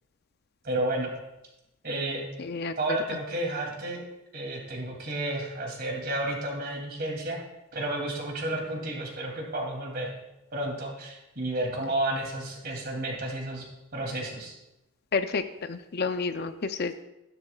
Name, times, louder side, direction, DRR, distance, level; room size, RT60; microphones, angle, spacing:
voice 1, 0.6-1.1 1.8-2.2 2.8-4.0 4.3-7.4 7.7-10.1 10.5-13.6 13.9-14.5, right 1 dB, 45° right, 0 dB, 2.8 m, -31 dB
voice 2, 2.4-2.7 15.1-16.9, left 4 dB, 50° left, 9 dB, 0.5 m, -30 dB
14.5 x 12.0 x 2.3 m, 0.94 s
head